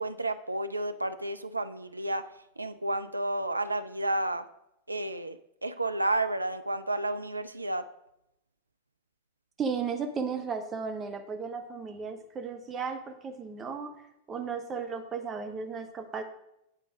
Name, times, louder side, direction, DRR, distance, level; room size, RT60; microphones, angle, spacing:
voice 1, 0.0-2.3 2.6-4.4 4.9-5.4 5.6-7.8, right 2 dB, 85° right, 10 dB, 0.3 m, -31 dB
voice 2, 9.6-13.9 14.3-16.2, right 5 dB, 25° right, 5 dB, 0.7 m, -35 dB
8.7 x 3.8 x 4.9 m, 0.84 s
figure-of-eight pair, 90°, 0 cm